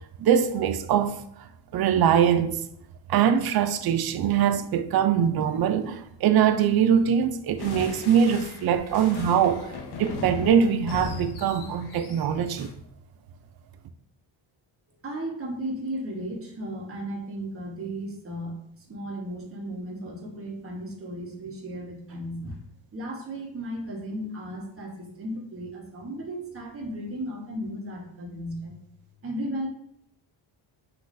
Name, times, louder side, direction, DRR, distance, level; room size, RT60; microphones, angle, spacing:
voice 1, 0.2-1.5 1.7-2.6 3.1-9.7 10.0-12.7, right 8 dB, 50° right, 0.5 m, -22 dB
sound 1, 7.6-12.7, left 3 dB, 55° left, 0.8 m, -37 dB
voice 2, 15.0-18.6 18.9-22.6 22.9-28.7 29.2-29.7, right 1 dB, 30° right, 1.2 m, -35 dB
5.8 x 3.1 x 2.6 m
cardioid pair, 110°, 47 cm